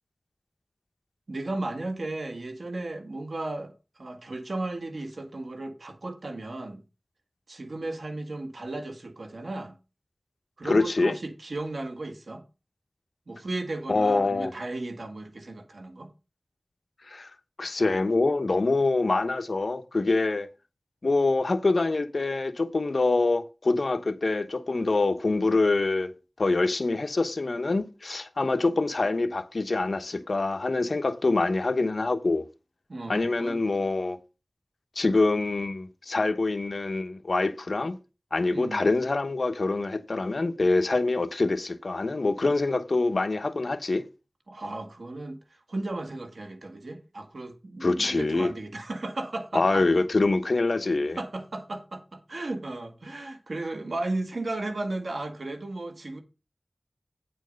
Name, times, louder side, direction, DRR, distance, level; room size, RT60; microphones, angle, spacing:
voice 1, 1.3-6.8 7.5-9.8 10.6-12.4 13.3-16.1 32.9-33.6 38.5-38.8 44.5-49.8 51.2-56.2, right 2 dB, 80° right, 1.6 m, -35 dB
voice 2, 10.6-11.2 13.9-14.5 17.1-17.3 17.6-20.5 21.0-26.1 26.4-32.4 33.1-34.2 35.0-38.0 38.3-44.1 47.8-48.5 49.5-51.2, left 3 dB, 70° left, 0.9 m, -25 dB
9.4 x 4.5 x 6.4 m
wide cardioid pair, 60°, 0 cm